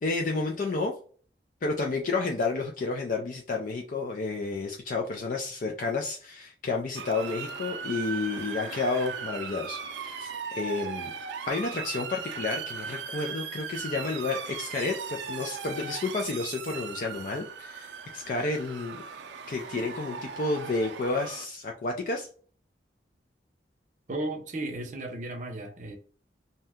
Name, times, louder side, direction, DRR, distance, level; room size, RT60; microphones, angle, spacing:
voice 1, 0.0-0.9 1.6-11.1 11.5-19.0 19.5-22.3, left 3 dB, 45° left, 0.4 m, -31 dB
Motor vehicle (road) / Siren, 7.0-21.5, right 6 dB, 85° right, 0.4 m, -38 dB
voice 2, 24.1-26.0, right 2 dB, 45° right, 0.6 m, -34 dB
2.7 x 2.2 x 3.5 m
head